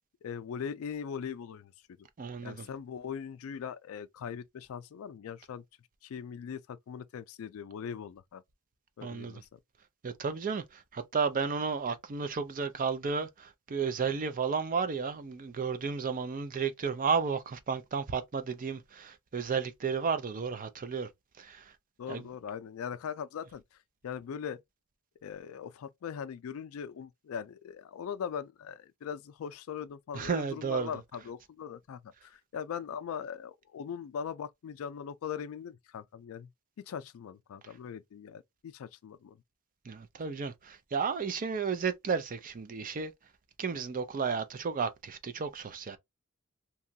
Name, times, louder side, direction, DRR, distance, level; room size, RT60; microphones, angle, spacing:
voice 1, 0.2-2.1 2.4-5.6 6.0-8.4 9.0-9.6 22.0-24.6 25.2-36.5 36.8-39.4, left 7 dB, 70° left, 0.3 m, -40 dB
voice 2, 2.2-2.7 9.0-9.3 10.0-21.1 21.4-21.6 22.1-22.2 30.1-30.9 39.9-43.1 43.6-46.0, right 5 dB, 40° right, 0.4 m, -33 dB
2.9 x 2.3 x 2.6 m
head